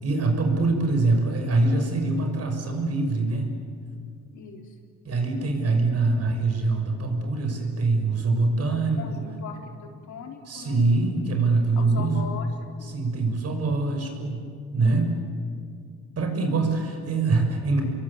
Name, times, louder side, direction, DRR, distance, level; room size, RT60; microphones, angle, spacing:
voice 1, 0.0-3.5 5.1-9.2 10.5-12.2 12.9-14.4 14.7-15.2 16.2-17.8, right 3 dB, 55° right, 4 dB, 6.2 m, -24 dB
voice 2, 4.3-4.7 9.0-10.8 11.8-12.9, left 5 dB, 75° left, 3 dB, 3.8 m, -40 dB
28.0 x 22.5 x 8.5 m, 2.2 s
cardioid pair, 90°, 30 cm